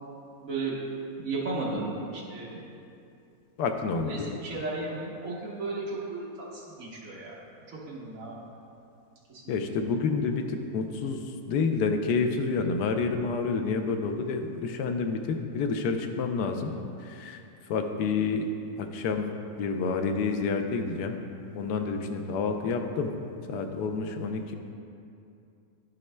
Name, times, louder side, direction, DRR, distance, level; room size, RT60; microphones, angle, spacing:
voice 1, 0.4-0.8 1.2-2.6 4.0-7.4 7.7-8.4 9.3-9.5, right 3 dB, 50° right, -6 dB, 1.6 m, -34 dB
voice 2, 3.6-4.3 9.5-16.7 17.0-17.4 17.7-18.5 18.8-19.3 19.6-21.1 21.5-23.1 23.5-24.5, left 4 dB, 75° left, 5 dB, 1.1 m, -29 dB
10.5 x 6.3 x 2.2 m, 2.6 s
omnidirectional pair, 1.9 m